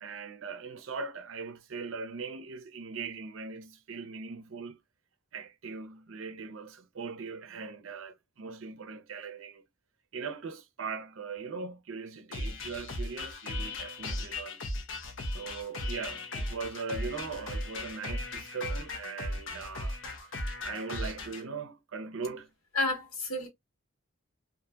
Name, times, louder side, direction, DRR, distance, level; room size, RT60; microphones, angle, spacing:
voice 1, 0.0-4.8 5.3-9.6 10.1-14.6 15.3-20.0 20.6-22.5, right 5 dB, 70° right, 0.5 m, -40 dB
sound 1, 12.3-21.4, left 1 dB, 60° left, 0.7 m, -37 dB
voice 2, 22.7-23.5, left 2 dB, 90° left, 1.2 m, -30 dB
2.7 x 2.5 x 2.3 m
head